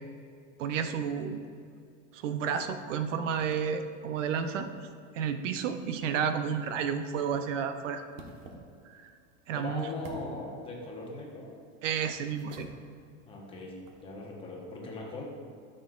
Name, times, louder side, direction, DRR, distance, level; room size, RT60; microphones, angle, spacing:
voice 1, 0.6-1.4 2.1-4.7 5.1-8.0 8.9-9.1 9.5-9.9 11.8-12.7, right 7 dB, 75° right, 8 dB, 0.7 m, -31 dB
sound 1, 6.9-14.1, right 2 dB, 90° right, 1.3 m, -53 dB
voice 2, 9.5-11.5 13.2-15.3, left 2 dB, 15° left, -2 dB, 1.0 m, -40 dB
12.5 x 6.4 x 2.4 m, 2.4 s
supercardioid pair, 165°, 38 cm